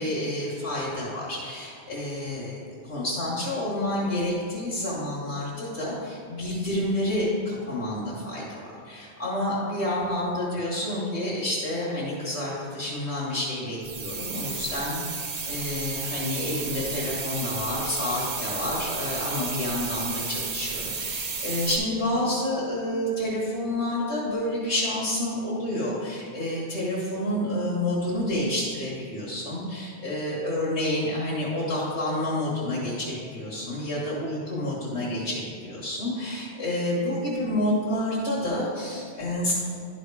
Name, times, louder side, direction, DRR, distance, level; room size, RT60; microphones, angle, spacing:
voice 1, 0.0-2.6 2.8-39.5, left 1 dB, 90° left, -7 dB, 1.8 m, -29 dB
sound 1, 13.8-21.8, right 4 dB, 45° right, 0.7 m, -32 dB
11.5 x 4.1 x 4.7 m, 2.3 s
omnidirectional pair, 1.1 m